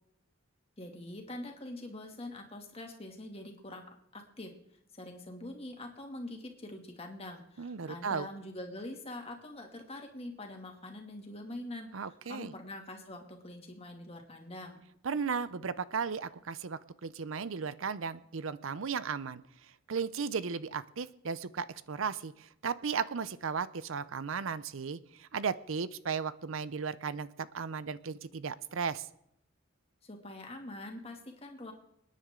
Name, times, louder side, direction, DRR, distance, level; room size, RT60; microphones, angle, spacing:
voice 1, 0.8-4.5 4.9-14.8 30.0-31.7, left 1 dB, 30° left, 3 dB, 2.3 m, -44 dB
voice 2, 7.6-8.3 11.9-12.5 15.0-19.4 19.9-29.1, right 6 dB, 80° right, 16 dB, 0.6 m, -35 dB
27.0 x 10.0 x 3.8 m, 0.78 s
head